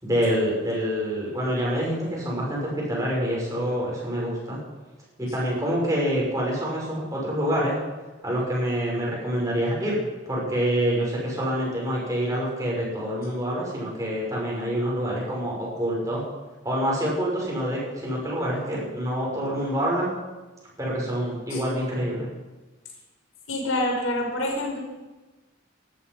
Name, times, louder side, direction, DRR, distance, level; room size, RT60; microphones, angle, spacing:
voice 1, 0.0-4.6 5.2-7.8 8.2-10.0 10.2-16.2 16.6-20.1 20.8-22.3, equal, 15° right, -5 dB, 6.6 m, -26 dB
voice 2, 23.5-24.8, left 1 dB, 85° left, 1 dB, 5.0 m, -26 dB
18.0 x 13.0 x 5.7 m, 1.2 s
head